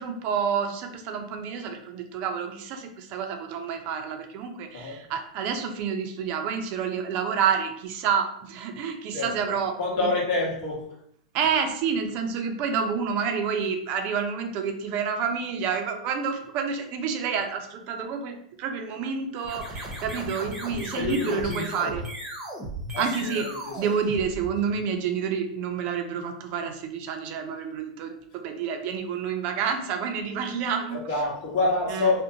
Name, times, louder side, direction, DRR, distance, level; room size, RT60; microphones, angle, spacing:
voice 1, 0.0-10.1 11.3-22.0 23.0-23.5 23.8-31.0 31.9-32.1, right 6 dB, 45° right, 5 dB, 0.4 m, -29 dB
voice 2, 9.8-10.9 20.7-21.9 22.9-23.5 23.8-23.9 30.9-32.2, left 3 dB, 60° left, -2 dB, 1.0 m, -27 dB
sound 1, 19.4-24.8, right 1 dB, 10° right, 0.7 m, -36 dB
2.6 x 2.1 x 2.7 m, 0.69 s
hypercardioid pair, 130°, 4 cm